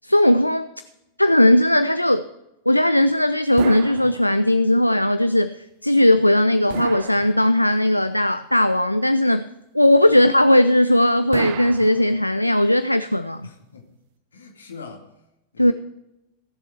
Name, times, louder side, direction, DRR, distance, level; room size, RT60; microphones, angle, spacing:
voice 1, 0.0-0.7 1.2-2.3 2.7-9.5 9.7-13.5 15.6-15.7, left 1 dB, 90° left, 12 dB, 0.4 m, -18 dB
sound 1, 3.6-4.8 6.7-7.9 11.3-12.6, right 12 dB, 50° right, 0.7 m, -34 dB
voice 2, 13.4-13.9 14.3-15.1 15.5-15.7, left 4 dB, 70° left, 3 dB, 2.2 m, -42 dB
17.0 x 7.5 x 4.5 m, 0.90 s
figure-of-eight pair, 90°, 0 cm